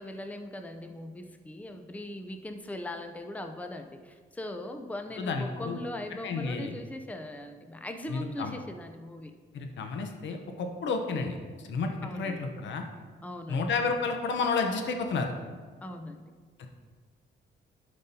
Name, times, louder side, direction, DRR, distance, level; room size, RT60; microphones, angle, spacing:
voice 1, 0.0-9.3 12.0-12.4 13.2-13.6 15.8-16.3, left 1 dB, 5° left, 5 dB, 0.6 m, -40 dB
voice 2, 5.2-5.8 6.2-6.7 8.1-8.5 9.5-12.8 13.5-15.3 16.6-16.7, left 4 dB, 70° left, 4 dB, 1.0 m, -31 dB
12.0 x 5.2 x 2.9 m, 1.5 s
cardioid pair, 90°, 20 cm